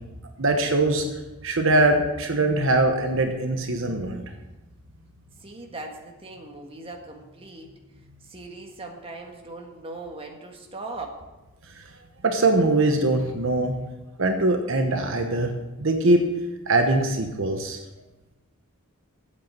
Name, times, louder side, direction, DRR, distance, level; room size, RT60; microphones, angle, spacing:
voice 1, 0.4-1.1 1.4-4.2 12.2-13.7 14.2-15.5 15.8-16.3 16.7-17.8, right 2 dB, 60° right, 4 dB, 1.1 m, -22 dB
voice 2, 5.4-7.7 8.2-11.2, right 2 dB, 25° right, 2 dB, 1.6 m, -39 dB
8.5 x 8.4 x 8.9 m, 1.1 s
head